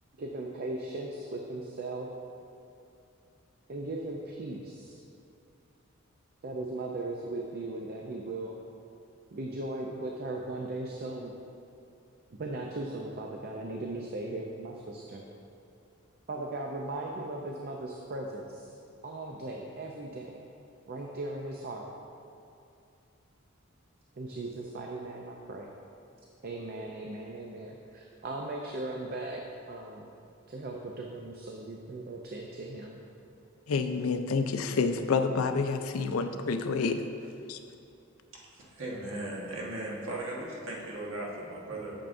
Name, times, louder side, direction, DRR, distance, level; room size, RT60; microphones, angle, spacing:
voice 1, 0.2-2.1 3.7-5.0 6.4-8.6 9.3-11.4 12.3-15.2 16.3-18.7 19.0-20.3 20.9-21.9 24.2-25.7 26.4-29.4 29.7-30.1 30.5-33.0, right 2 dB, 50° right, 0 dB, 0.5 m, -38 dB
voice 2, 33.7-37.1 37.5-37.6, left 4 dB, 85° left, 8 dB, 0.5 m, -28 dB
voice 3, 38.3-41.9, right 1 dB, 65° right, -4 dB, 1.3 m, -37 dB
8.9 x 6.8 x 2.6 m, 2.7 s
head